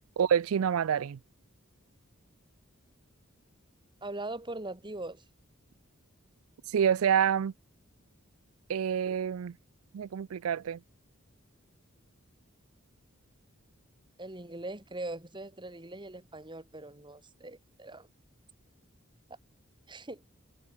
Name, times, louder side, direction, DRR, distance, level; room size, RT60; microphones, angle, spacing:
voice 1, 0.2-1.2 6.7-7.5 8.7-9.5 9.9-10.8, right 8 dB, 85° right, 0.4 m, -27 dB
voice 2, 4.0-5.2 14.2-18.1 19.9-20.2, right 2 dB, 25° right, 2.6 m, -41 dB
head